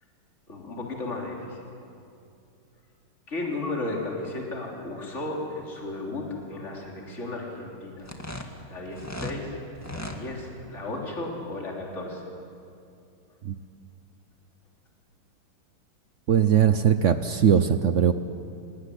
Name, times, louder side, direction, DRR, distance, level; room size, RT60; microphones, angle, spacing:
voice 1, 0.5-1.6 3.3-8.1 8.7-9.6 9.9-12.3, left 2 dB, 35° left, -1 dB, 3.7 m, -34 dB
sound 1, 8.0-9.4 9.7-10.2, left 1 dB, 10° left, 1.7 m, -36 dB
voice 2, 16.3-18.1, right 8 dB, 70° right, 11 dB, 0.7 m, -20 dB
26.5 x 19.0 x 10.0 m, 2.6 s
omnidirectional pair, 2.3 m